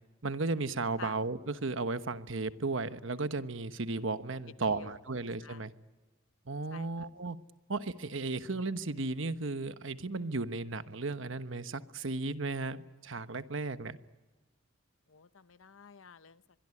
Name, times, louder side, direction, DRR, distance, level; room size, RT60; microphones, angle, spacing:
voice 1, 0.2-5.7 6.5-7.4 7.7-14.0, right 3 dB, 65° right, 11 dB, 1.2 m, -35 dB
voice 2, 4.7-5.0 5.4-5.6 6.7-7.1 15.1-16.4, left 6 dB, 75° left, 15 dB, 0.8 m, -50 dB
25.0 x 22.0 x 9.8 m, 1.2 s
head